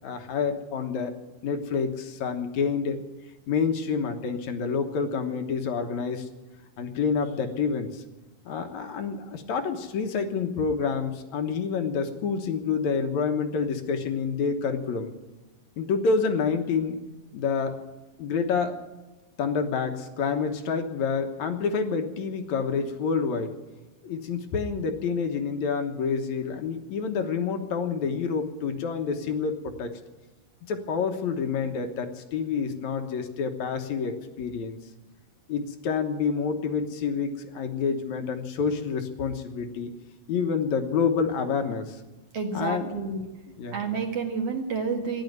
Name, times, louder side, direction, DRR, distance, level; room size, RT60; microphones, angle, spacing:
voice 1, 0.0-1.1 1.4-3.0 3.5-6.3 6.8-8.0 8.5-15.1 15.8-17.0 17.3-17.8 18.2-18.8 19.4-23.5 24.0-30.0 30.7-34.8 35.5-39.9 40.3-42.0 42.5-43.0 43.6-43.8, left 5 dB, 65° left, 6 dB, 2.3 m, -28 dB
voice 2, 42.3-43.2 43.7-45.2, right 5 dB, 50° right, 2 dB, 2.3 m, -29 dB
14.5 x 10.5 x 9.4 m, 1.2 s
omnidirectional pair, 4.1 m